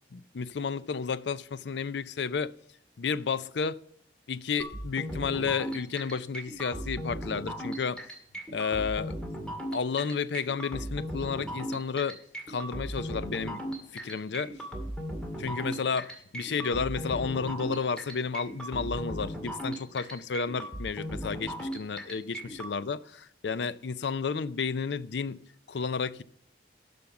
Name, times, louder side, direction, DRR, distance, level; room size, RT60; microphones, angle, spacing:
voice 1, 0.1-2.5 3.0-3.8 4.3-8.0 8.5-9.2 9.7-12.2 12.5-13.6 13.9-14.5 15.4-25.4 25.7-26.2, left 5 dB, 80° left, 0.5 m, -32 dB
sound 1, 4.6-22.7, equal, 5° left, 2.0 m, -37 dB
13.0 x 5.1 x 7.0 m
head